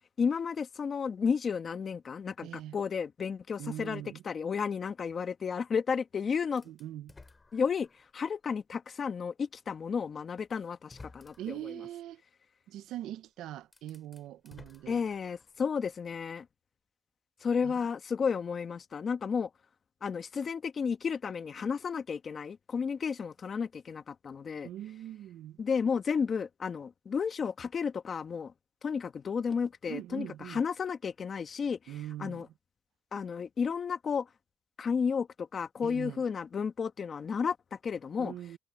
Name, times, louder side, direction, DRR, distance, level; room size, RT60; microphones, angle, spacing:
voice 1, 0.2-6.6 7.5-7.9 8.1-11.3 14.9-16.4 17.4-19.5 20.0-24.7 25.6-28.5 28.8-31.8 32.2-32.5 33.1-34.3 34.8-38.3, left 6 dB, 45° left, 1.5 m, -32 dB
voice 2, 2.4-2.8 3.6-4.2 6.6-7.1 11.4-12.2 12.7-15.0 17.6-17.8 24.6-25.6 29.9-30.6 31.9-32.5 35.8-36.2 38.2-38.6, right 13 dB, 85° right, 0.7 m, -42 dB
sound 1, 6.6-8.2 8.7-8.8 10.0-10.1 10.7-11.7 13.1-13.2 13.6-15.6, left 3 dB, 25° left, 5.6 m, -55 dB
cardioid pair, 90°, 0 cm